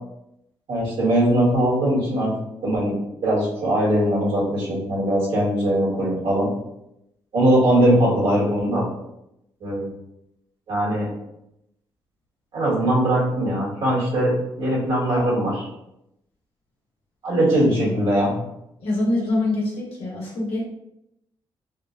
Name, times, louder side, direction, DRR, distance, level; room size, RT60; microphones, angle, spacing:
voice 1, 0.7-2.3 2.6-2.9 3.2-6.5 7.3-8.9 9.6-9.9 10.7-11.1 12.5-15.7 17.2-18.4, right 1 dB, 65° right, -7 dB, 1.5 m, -20 dB
voice 2, 18.8-20.6, left 2 dB, 85° left, -5 dB, 1.3 m, -25 dB
3.6 x 2.2 x 2.5 m, 0.84 s
cardioid pair, 115°, 9 cm